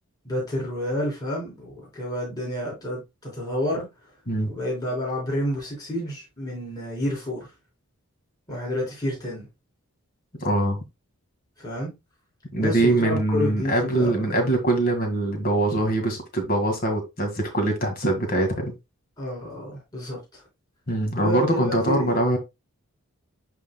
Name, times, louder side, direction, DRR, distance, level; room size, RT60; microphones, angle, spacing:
voice 1, 0.2-3.9 4.5-7.5 8.5-9.5 11.6-11.9 12.6-14.3 19.2-20.4 21.2-22.2, left 1 dB, 15° left, 3.9 m, -29 dB
voice 2, 10.4-10.8 12.5-18.7 20.9-22.4, right 1 dB, 40° left, 1.9 m, -23 dB
11.5 x 3.9 x 2.2 m
head